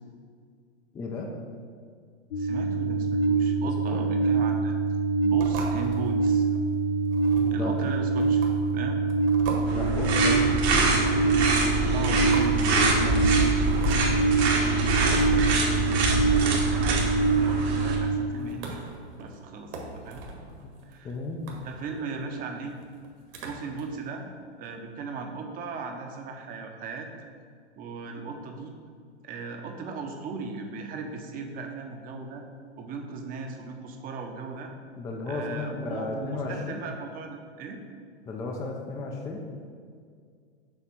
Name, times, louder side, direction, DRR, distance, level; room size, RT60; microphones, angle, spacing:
voice 1, 0.9-1.3 3.9-4.0 7.3-7.7 9.7-10.9 20.6-20.7 21.0-21.4 35.0-36.8 38.3-39.4, left 3 dB, 10° left, 1 dB, 0.4 m, -34 dB
sound 1, 2.3-18.2, right 4 dB, 65° left, 0.7 m, -25 dB
voice 2, 2.4-4.8 5.2-6.5 7.5-9.0 11.9-14.2 14.7-15.5 16.1-18.8 19.2-20.2 20.9-21.2 21.6-22.8 23.4-24.2 24.6-27.1 27.8-28.7 29.2-32.4 32.8-34.7 35.3-37.8, right 4 dB, 25° right, 4 dB, 0.7 m, -37 dB
sound 2, 5.4-23.8, right 3 dB, 55° right, 1.4 m, -41 dB
sound 3, 9.7-17.9, right 2 dB, 70° right, 1.6 m, -25 dB
7.2 x 3.3 x 6.0 m, 2.1 s
hypercardioid pair, 125°, 34 cm